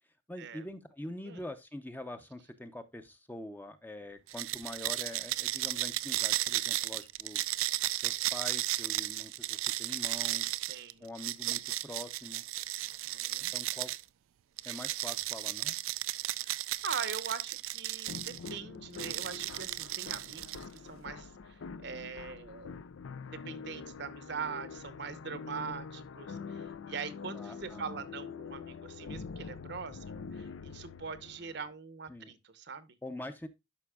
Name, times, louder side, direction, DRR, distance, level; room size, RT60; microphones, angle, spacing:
voice 1, 0.3-7.4 8.0-10.5 11.0-12.4 13.1-13.2 13.5-13.9 14.6-15.7 26.3-26.5 27.3-28.1 32.1-32.3 33.0-33.5, left 1 dB, 10° left, 0.6 m, -44 dB
sound 1, 4.3-14.0 14.6-18.5 18.9-20.8, right 16 dB, 90° right, 0.4 m, -34 dB
voice 2, 10.7-11.1 12.8-13.5 16.4-22.8 23.3-33.0, right 5 dB, 55° right, 0.8 m, -42 dB
sound 2, 18.1-31.7, left 5 dB, 75° left, 0.4 m, -45 dB
11.5 x 5.2 x 2.3 m
head